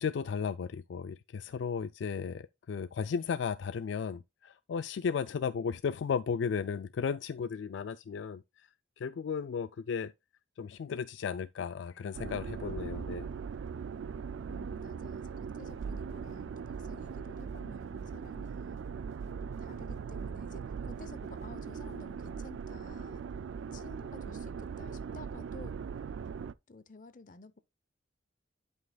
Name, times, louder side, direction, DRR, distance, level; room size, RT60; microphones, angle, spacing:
voice 1, 0.0-8.7 9.0-10.1 10.6-13.3, left 6 dB, 70° left, 0.3 m, -35 dB
sound 1, 12.1-26.5, right 6 dB, 85° right, 0.3 m, -40 dB
voice 2, 14.5-18.8 19.6-23.3 23.7-25.8 26.7-27.6, left 3 dB, 45° left, 0.7 m, -52 dB
sound 2, 15.7-20.6 20.9-22.0 22.2-22.3, equal, 40° right, 1.8 m, -61 dB
11.5 x 5.5 x 2.3 m
head